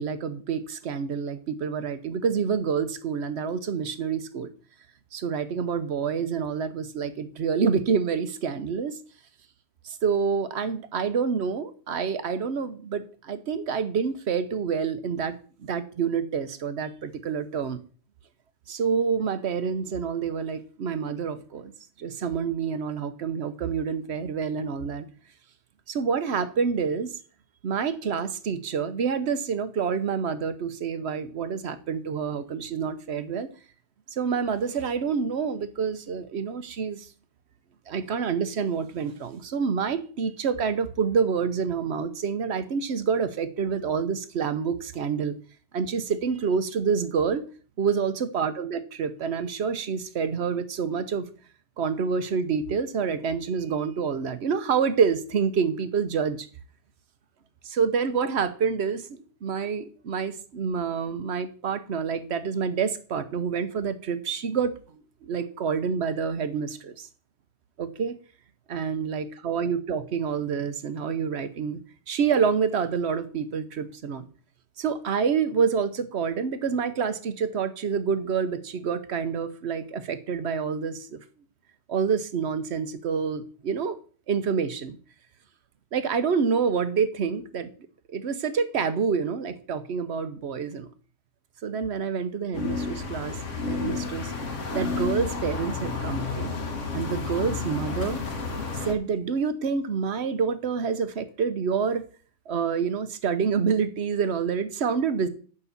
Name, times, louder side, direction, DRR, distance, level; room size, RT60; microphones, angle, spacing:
voice 1, 0.0-4.5 5.1-9.0 9.8-15.4 15.6-17.8 18.7-21.7 22.0-25.1 25.9-27.2 27.6-33.5 34.1-37.1 37.9-45.4 45.7-47.4 47.8-51.2 51.8-56.5 57.6-64.7 65.2-67.1 67.8-68.2 68.7-71.8 72.1-74.3 74.8-81.2 81.9-84.0 84.3-85.0 85.9-87.7 88.1-90.9 91.6-93.4 93.6-94.3 94.7-96.5 96.9-98.2 98.7-102.1 102.5-105.3, right 6 dB, 60° right, 11 dB, 1.1 m, -27 dB
sound 1, 92.5-98.9, left 4 dB, 75° left, 1.8 m, -31 dB
8.4 x 5.4 x 6.8 m, 0.42 s
omnidirectional pair, 1.3 m